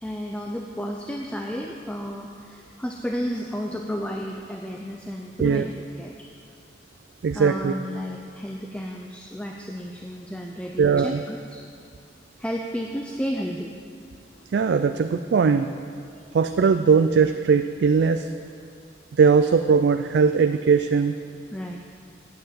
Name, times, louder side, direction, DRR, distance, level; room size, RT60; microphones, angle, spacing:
voice 1, 0.0-6.3 7.3-11.6 12.4-13.7 21.5-21.8, equal, 5° left, 1 dB, 0.4 m, -32 dB
voice 2, 7.2-7.7 10.8-11.2 14.5-15.7 16.3-18.3 19.2-21.1, right 5 dB, 75° right, 8 dB, 0.3 m, -19 dB
9.1 x 7.9 x 7.5 m, 2.3 s
head